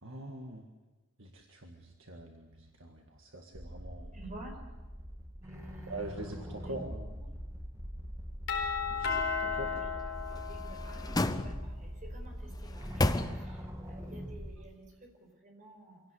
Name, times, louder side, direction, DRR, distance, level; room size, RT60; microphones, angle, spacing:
voice 1, 0.0-0.6 1.2-4.2 5.9-7.2 8.9-9.9, right 1 dB, 60° right, 2 dB, 1.9 m, -44 dB
sound 1, 3.5-14.6, equal, 15° right, 1.8 m, -43 dB
voice 2, 4.1-4.5 5.4-6.0 6.6-6.7 9.4-9.9 10.3-13.6 13.9-14.9 15.4-16.0, right 2 dB, 35° right, 2 dB, 5.1 m, -51 dB
Doorbell, 8.5-11.3, left 6 dB, 55° left, 4.4 m, -34 dB
sound 2, 10.3-12.0 12.5-13.8 14.2-14.3, left 1 dB, 15° left, 0.8 m, -33 dB
25.0 x 17.5 x 8.4 m, 1.2 s
head